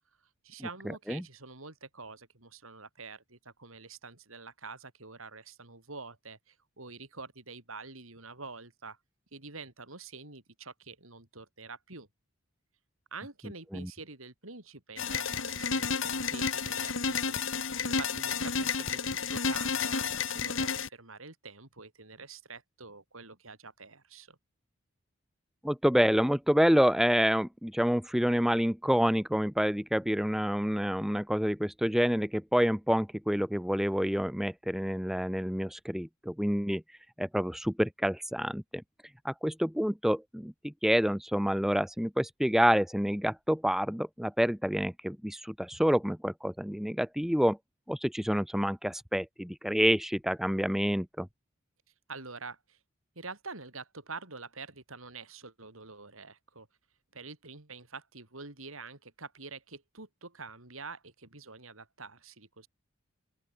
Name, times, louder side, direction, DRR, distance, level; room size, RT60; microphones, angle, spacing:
voice 1, 0.4-9.0 9.3-12.1 13.1-17.4 17.9-24.4 52.1-52.8 53.2-56.7 57.1-62.7, right 4 dB, 80° right, 5.0 m, -46 dB
sound 1, 15.0-20.9, left 5 dB, 65° left, 2.5 m, -31 dB
voice 2, 25.6-36.8 37.2-38.8 39.2-47.6 47.9-51.3, equal, ahead, 0.7 m, -28 dB
open air
head